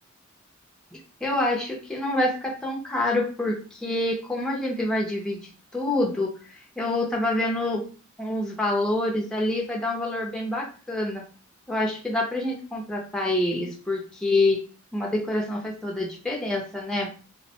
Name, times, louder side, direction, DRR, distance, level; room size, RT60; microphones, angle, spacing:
voice 1, 1.2-5.4 5.7-7.8 8.2-11.2 11.7-14.6 14.9-17.1, left 1 dB, 5° left, -2 dB, 0.4 m, -26 dB
2.9 x 2.1 x 2.8 m, 0.37 s
head